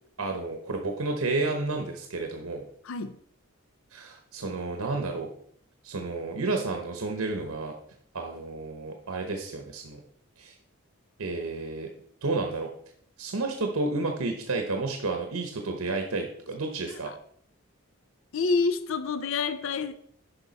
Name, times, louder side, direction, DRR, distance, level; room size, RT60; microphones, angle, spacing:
voice 1, 0.2-2.6 3.9-5.3 5.8-7.7 8.1-10.0 10.4-10.5 11.2-11.9 12.2-12.7 13.2-17.1, right 3 dB, 85° right, 4 dB, 0.9 m, -31 dB
voice 2, 2.8-3.2 16.9-17.2 18.3-19.9, left 4 dB, 65° left, 12 dB, 0.5 m, -28 dB
10.0 x 5.7 x 4.1 m, 0.66 s
head